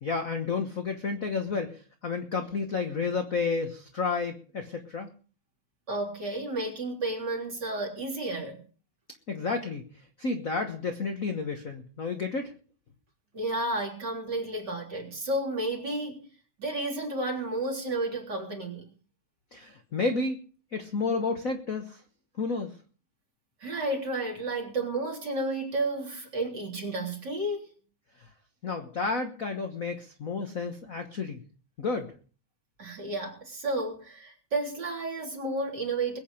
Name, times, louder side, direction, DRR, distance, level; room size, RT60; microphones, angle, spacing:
voice 1, 0.0-5.1 9.3-9.9 10.2-12.5 19.5-20.4 20.7-22.0 22.4-22.7 28.6-31.4 31.8-32.1, left 4 dB, 60° left, 5 dB, 0.8 m, -31 dB
voice 2, 5.9-8.6 13.3-16.3 16.6-18.9 23.6-27.7 32.8-36.2, right 2 dB, 35° right, 1 dB, 4.0 m, -32 dB
21.5 x 8.8 x 5.0 m, 0.39 s
omnidirectional pair, 3.4 m